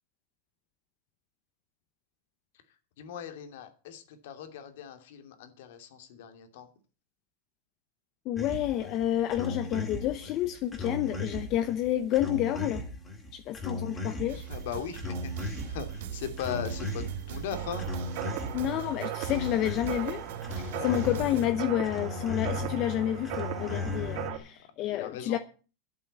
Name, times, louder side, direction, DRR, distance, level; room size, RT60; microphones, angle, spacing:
voice 1, 3.0-6.7 14.5-17.9 20.7-21.0 24.9-25.4, left 8 dB, 65° left, 2.8 m, -39 dB
voice 2, 8.3-12.8 13.3-14.5 18.5-20.2 20.6-25.4, left 12 dB, 35° left, 0.8 m, -29 dB
sound 1, 8.4-24.3, left 2 dB, 10° left, 2.3 m, -37 dB
sound 2, 14.3-21.5, right 10 dB, 75° right, 2.9 m, -40 dB
sound 3, 17.5-24.4, right 12 dB, 50° right, 2.7 m, -38 dB
11.5 x 8.5 x 8.4 m
supercardioid pair, 165°, 0 cm